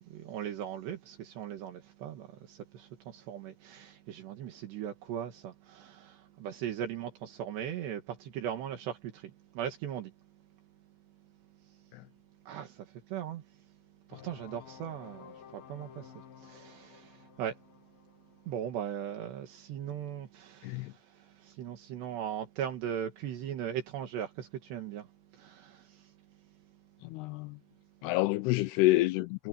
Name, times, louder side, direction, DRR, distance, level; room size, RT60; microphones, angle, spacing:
voice 1, 0.0-10.1 12.5-13.4 14.1-17.6 18.5-25.1 25.3-26.1, right 9 dB, 80° right, 4.2 m, -39 dB
sound 1, 14.1-19.7, left 9 dB, 60° left, 3.1 m, -53 dB
voice 2, 27.0-27.6 28.0-29.5, left 18 dB, 85° left, 2.5 m, -28 dB
omnidirectional pair, 4.9 m